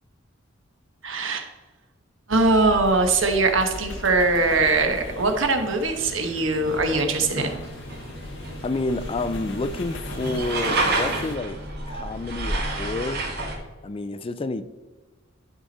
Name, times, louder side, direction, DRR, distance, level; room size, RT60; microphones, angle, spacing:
voice 1, 1.0-1.5 2.3-7.6, right 3 dB, 75° right, 5 dB, 1.1 m, -21 dB
sound 1, 2.3-11.4, left 2 dB, 65° left, 0.8 m, -39 dB
sound 2, 4.4-13.6, right 2 dB, 55° right, 1.6 m, -31 dB
voice 2, 8.6-11.6 11.9-13.2 13.8-14.6, left 2 dB, 30° left, 13 dB, 0.4 m, -29 dB
11.0 x 4.9 x 4.1 m, 1.3 s
head